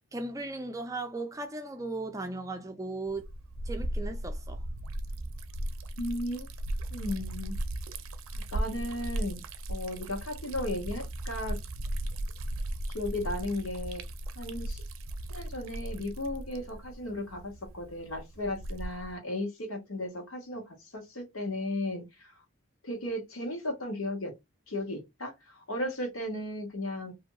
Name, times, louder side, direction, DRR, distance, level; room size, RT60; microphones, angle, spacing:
voice 1, 0.1-3.3 3.6-4.6, right 2 dB, 15° right, 0.4 m, -37 dB
Liquid, 3.1-19.2, right 1 dB, 85° right, 0.5 m, -37 dB
voice 2, 6.0-6.5 6.9-7.6 8.3-9.4 9.7-11.6 12.9-14.0 14.3-14.8 15.3-22.3 22.8-24.3 24.7-27.1, left 1 dB, 90° left, 1.3 m, -35 dB
2.9 x 2.7 x 2.2 m
head